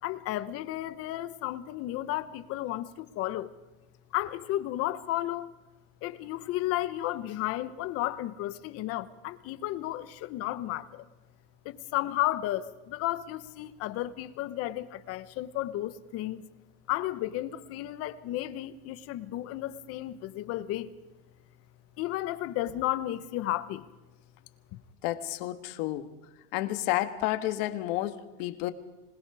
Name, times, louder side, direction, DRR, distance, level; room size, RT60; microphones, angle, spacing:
voice 1, 0.0-3.5 4.1-5.5 6.0-11.1 11.6-16.4 16.9-20.9 22.0-23.8 24.7-24.8, left 15 dB, 50° left, 1.1 m, -33 dB
voice 2, 25.0-26.1 26.5-28.7, left 15 dB, 75° left, 1.6 m, -31 dB
26.0 x 20.5 x 4.9 m
cardioid pair, 160°, 29 cm